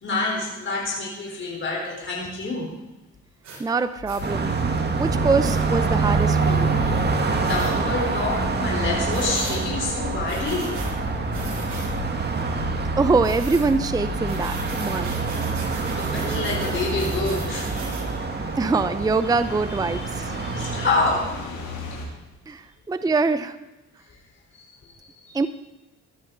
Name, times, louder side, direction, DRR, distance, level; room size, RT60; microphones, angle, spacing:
voice 1, 0.0-2.7 7.4-10.8 15.9-17.8 20.3-21.3 24.5-24.7 25.0-25.5, left 3 dB, 40° left, -2 dB, 4.0 m, -27 dB
sound 1, 3.4-3.6 4.1-4.2 5.4-5.6 7.4-7.7 9.1-9.6 10.3-10.9 11.3-11.9 13.2-13.7 14.3-18.1, right 3 dB, 70° right, 5.8 m, -38 dB
voice 2, 3.6-4.5 4.9-6.8 13.0-15.1 18.6-20.4 22.5-23.6 25.3-25.5, right 4 dB, 15° right, 12 dB, 0.5 m, -24 dB
sound 2, 3.9-22.1, left 5 dB, 85° left, 3.2 m, -36 dB
Car passing by, 4.2-21.4, right 4 dB, 35° right, 1.8 m, -26 dB
15.5 x 12.0 x 3.9 m, 1.1 s
cardioid pair, 90°, 30 cm